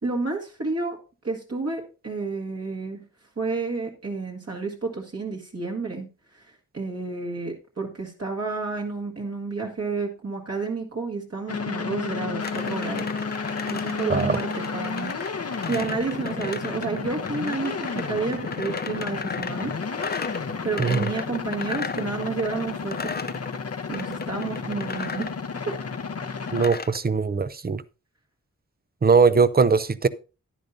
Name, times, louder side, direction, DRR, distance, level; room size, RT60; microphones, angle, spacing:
voice 1, 0.0-1.0 1.2-3.0 3.4-6.1 6.3-13.1 13.7-19.7 20.6-23.1 23.9-25.3 25.7-25.8, right 3 dB, 50° right, 1.7 m, -30 dB
sound 1, 11.5-26.7, left 5 dB, 50° left, 0.8 m, -32 dB
sound 2, 12.4-27.0, left 5 dB, 30° left, 0.5 m, -36 dB
voice 2, 20.8-21.1 26.5-27.8 29.0-30.1, right 5 dB, 30° right, 0.5 m, -20 dB
10.5 x 10.0 x 2.7 m
wide cardioid pair, 60°, 31 cm